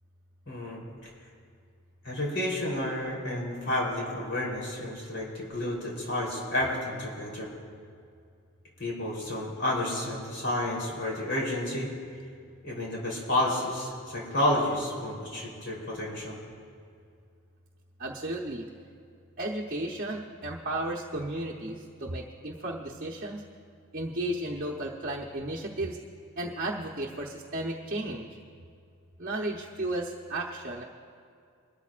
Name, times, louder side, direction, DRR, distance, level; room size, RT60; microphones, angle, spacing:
voice 1, 0.5-1.1 2.0-7.5 8.8-11.9 12.6-16.4, left 1 dB, 55° left, -3 dB, 3.6 m, -30 dB
voice 2, 18.0-18.7 19.4-23.4 23.9-26.0 26.4-28.3 29.2-30.8, right 1 dB, 45° right, -3 dB, 0.9 m, -34 dB
23.0 x 13.0 x 2.5 m, 2.3 s
head